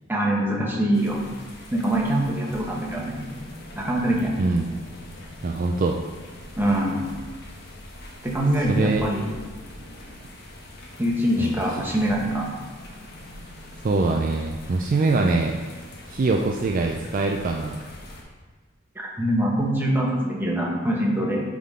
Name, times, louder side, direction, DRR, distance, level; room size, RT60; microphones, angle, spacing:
voice 1, 0.1-1.2 1.7-3.3 3.7-4.3 6.6-7.0 8.2-9.3 11.0-12.5 18.9-21.4, right 1 dB, 10° right, -3 dB, 1.1 m, -24 dB
sound 1, 0.9-18.2, left 1 dB, 55° left, 1.1 m, -43 dB
voice 2, 5.4-6.0 8.7-9.0 11.4-11.6 13.8-15.5 16.1-17.8, right 3 dB, 40° right, 1 dB, 0.4 m, -23 dB
9.5 x 3.7 x 3.7 m, 1.4 s
head